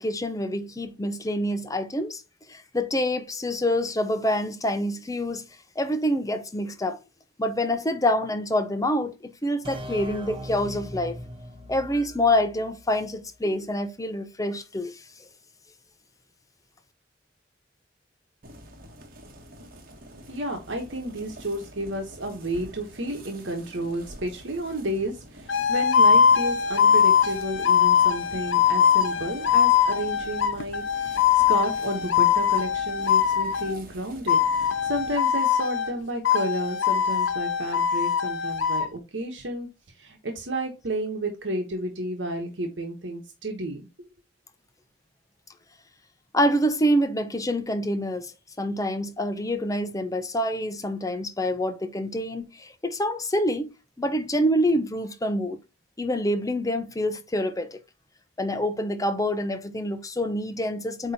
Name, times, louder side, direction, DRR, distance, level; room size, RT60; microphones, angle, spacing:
voice 1, 0.0-2.2 2.5-5.4 5.8-7.0 7.4-11.2 11.7-15.0 46.3-48.3 48.6-53.7 54.0-55.6 56.0-57.8 58.4-61.1, equal, 20° left, 0.8 m, -26 dB
sound 1, 9.6-13.2, left 1 dB, 30° right, 1.2 m, -39 dB
sound 2, 18.4-35.2, equal, 50° right, 1.4 m, -47 dB
voice 2, 20.3-39.7 39.9-43.8, right 1 dB, 75° right, 1.2 m, -32 dB
sound 3, 25.5-33.8 34.3-36.0 36.2-38.9, left 8 dB, 90° left, 0.7 m, -22 dB
8.4 x 3.0 x 4.2 m
head